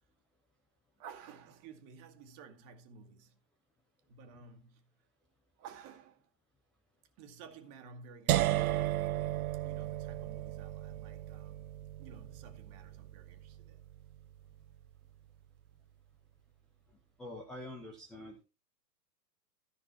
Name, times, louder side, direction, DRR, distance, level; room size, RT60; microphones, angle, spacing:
voice 1, 1.0-3.4 4.1-5.0 5.6-6.3 7.2-9.0 9.6-13.8, right 6 dB, 30° right, 1.9 m, -54 dB
sound 1, 8.3-14.2, right 14 dB, 60° right, 0.6 m, -35 dB
voice 2, 17.2-18.4, left 1 dB, ahead, 0.4 m, -45 dB
14.0 x 5.9 x 4.3 m
hypercardioid pair, 125°, 49 cm